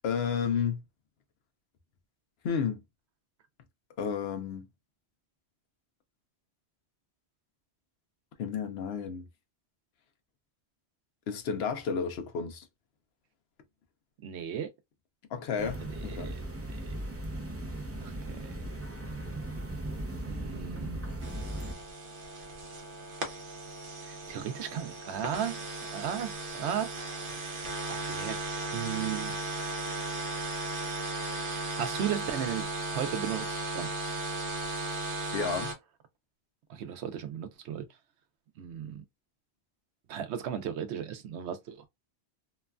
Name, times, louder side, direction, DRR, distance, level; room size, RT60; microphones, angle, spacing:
voice 1, 0.0-0.8 2.4-2.8 4.0-4.7 8.4-9.3 11.3-12.7 15.3-16.3 35.3-35.7, left 6 dB, 70° left, 0.8 m, -32 dB
voice 2, 14.2-14.7 15.8-17.0 18.0-18.6 20.3-21.0 24.1-26.9 27.9-28.4 28.7-29.6 31.8-33.9 36.7-37.9 38.6-39.0 40.1-41.9, right 9 dB, 85° right, 0.9 m, -36 dB
sound 1, 15.6-21.7, right 1 dB, 20° right, 0.4 m, -37 dB
sound 2, 21.2-35.7, right 2 dB, 55° right, 0.9 m, -36 dB
3.0 x 2.2 x 2.3 m
omnidirectional pair, 1.1 m